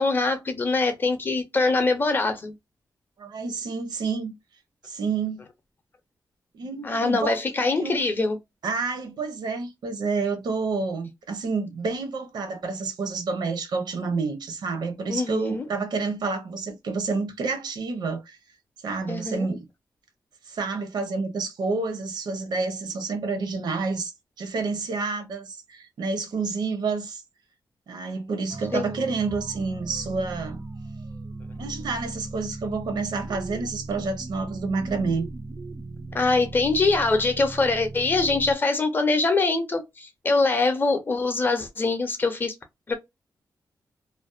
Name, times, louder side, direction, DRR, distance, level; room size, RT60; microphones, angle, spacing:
voice 1, 0.0-2.5 6.8-8.4 15.1-15.7 19.1-19.5 28.7-28.9 36.1-42.5 42.9-43.0, left 3 dB, 30° left, 0.5 m, -23 dB
voice 2, 3.2-4.3 4.8-5.4 6.5-7.3 7.8-8.1 8.6-18.4 18.8-19.7 20.5-24.1 24.4-27.2 27.9-30.6 31.6-35.3, right 4 dB, 85° right, 0.7 m, -29 dB
sound 1, 28.5-38.5, right 2 dB, 30° right, 0.4 m, -38 dB
2.5 x 2.1 x 2.4 m
wide cardioid pair, 180°, 7 cm